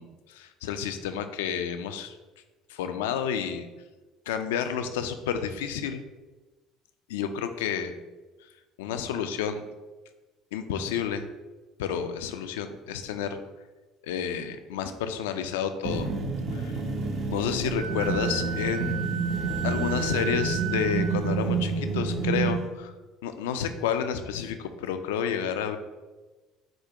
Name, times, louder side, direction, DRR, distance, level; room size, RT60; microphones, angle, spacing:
voice 1, 0.0-2.1 2.7-3.7 4.3-6.0 7.1-7.9 8.8-9.6 10.5-11.3 11.8-13.4 14.0-16.1 16.5-16.8 17.3-19.0 19.6-22.9 23.2-25.8, left 8 dB, 90° left, 8 dB, 0.3 m, -30 dB
sound 1, 15.8-22.6, right 4 dB, 55° right, 0.9 m, -29 dB
Wind instrument woodwind instrument, 17.8-21.3, right 12 dB, 85° right, 0.7 m, -35 dB
4.9 x 2.2 x 4.6 m, 1.2 s
supercardioid pair, 80°, 0 cm